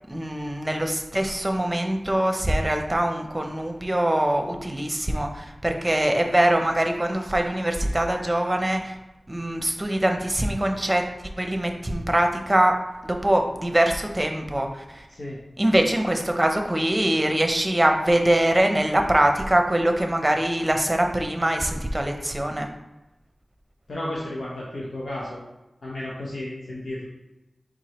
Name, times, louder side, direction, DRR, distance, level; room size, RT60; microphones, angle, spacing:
voice 1, 0.1-9.0 9.3-11.1 11.4-12.8 13.0-15.1 15.6-22.7, right 1 dB, 25° right, 4 dB, 0.7 m, -23 dB
voice 2, 23.9-25.4 25.8-27.1, left 1 dB, 80° left, -6 dB, 0.9 m, -33 dB
4.6 x 3.7 x 3.0 m, 0.99 s
cardioid pair, 45°, 0 cm